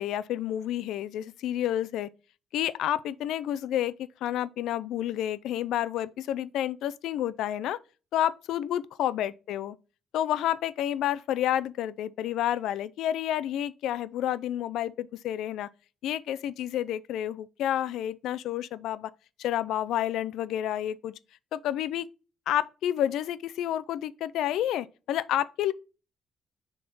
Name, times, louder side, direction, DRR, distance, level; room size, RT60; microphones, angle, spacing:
voice 1, 0.0-2.1 2.5-7.8 8.1-9.8 10.1-15.7 16.0-19.1 19.4-21.1 21.5-22.1 22.5-25.7, left 11 dB, 80° left, 0.3 m, -30 dB
6.7 x 3.6 x 3.9 m
cardioid pair, 170°, 0 cm